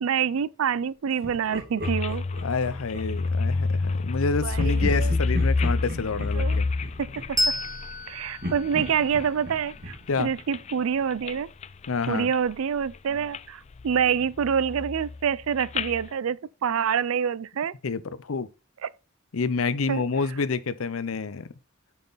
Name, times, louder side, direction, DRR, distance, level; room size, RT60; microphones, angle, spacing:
voice 1, 0.0-2.2 4.4-5.1 6.4-6.6 7.0-7.4 8.1-11.5 12.1-17.7 18.8-18.9 19.9-20.0, right 7 dB, 75° right, 0.4 m, -27 dB
Laughter, 1.2-3.4 4.5-8.0 8.4-11.2, equal, 50° right, 2.0 m, -37 dB
sound 1, 1.8-9.3 9.7-10.7 11.1-11.4 11.6-12.5 12.8-13.4 13.7-16.1, left 3 dB, 30° left, 0.3 m, -28 dB
voice 2, 2.4-6.7 10.1-10.3 11.9-12.3 17.8-18.5 19.3-21.5, left 4 dB, 75° left, 0.6 m, -28 dB
Bell, 7.4-10.4, left 1 dB, 15° right, 1.2 m, -32 dB
7.6 x 5.8 x 4.0 m
head